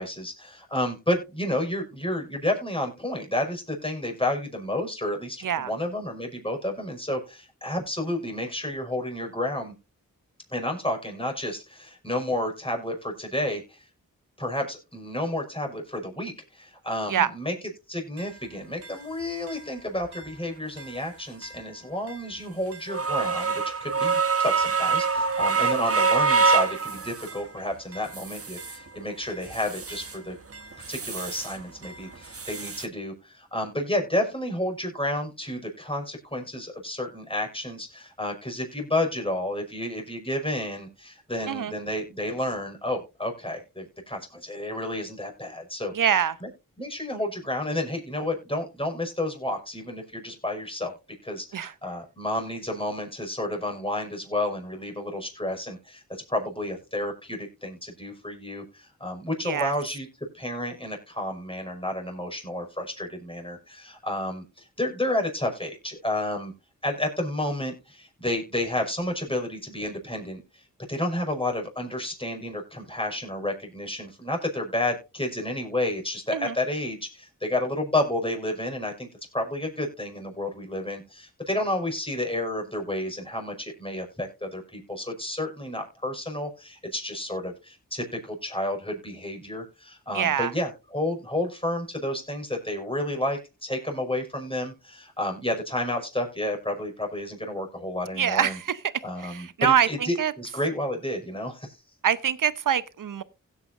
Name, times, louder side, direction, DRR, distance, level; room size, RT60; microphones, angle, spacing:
voice 1, 0.0-9.7 10.5-13.9 14.4-17.5 17.9-30.4 30.9-45.9 46.4-46.5 46.8-51.0 51.2-60.1 60.3-66.5 66.8-79.1 79.3-98.6 99.0-101.8, left 1 dB, 15° left, 5.5 m, -31 dB
sound 1, 18.2-18.3 18.8-18.9 19.5-19.6 20.1-20.3 20.8-20.9 21.4-21.6 22.1-22.2 22.7-27.5 27.9-28.8 29.2-30.2 30.5-31.6 31.8-32.9, right 4 dB, 40° right, 1.3 m, -26 dB
voice 2, 45.9-46.4 51.5-51.7 59.4-59.7 76.3-76.5 90.1-90.5 98.1-98.8 99.2-100.3 102.0-103.2, right 8 dB, 65° right, 0.9 m, -24 dB
16.5 x 8.6 x 2.6 m
cardioid pair, 45°, 35 cm